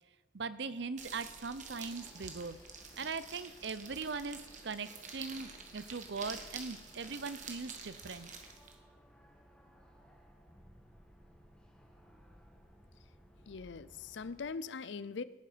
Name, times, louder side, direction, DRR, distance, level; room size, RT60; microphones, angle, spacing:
voice 1, 0.3-2.6 3.0-8.3, right 4 dB, 60° right, 14 dB, 0.6 m, -40 dB
sound 1, 1.0-14.5, equal, 5° left, 1.6 m, -60 dB
sound 2, 1.0-8.8, right 5 dB, 40° right, 1.6 m, -49 dB
sound 3, 1.9-8.5, left 4 dB, 80° left, 4.5 m, -63 dB
voice 2, 13.5-15.2, left 4 dB, 65° left, 16 dB, 0.5 m, -41 dB
17.5 x 9.4 x 5.1 m, 1.2 s
head